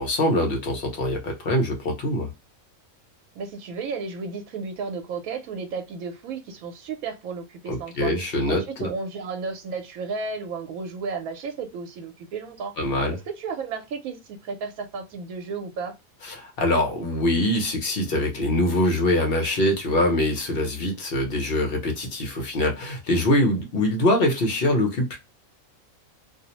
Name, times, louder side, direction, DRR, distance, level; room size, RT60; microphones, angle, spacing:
voice 1, 0.0-2.3 7.7-8.9 12.8-13.2 16.2-25.2, left 1 dB, 50° left, 0.8 m, -23 dB
voice 2, 3.4-8.1 8.5-12.7 13.1-16.0, right 4 dB, 80° right, 1.1 m, -33 dB
2.5 x 2.0 x 2.8 m
omnidirectional pair, 1.5 m